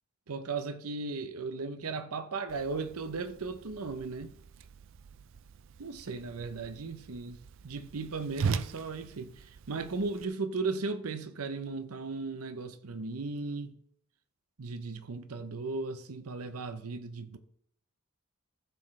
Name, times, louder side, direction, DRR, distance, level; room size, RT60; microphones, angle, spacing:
voice 1, 0.3-4.3 5.8-13.8 14.6-17.4, right 4 dB, 85° right, 0.7 m, -36 dB
Whoosh swoosh swish, 2.5-10.2, right 5 dB, 60° right, 0.4 m, -40 dB
14.5 x 6.1 x 3.2 m
head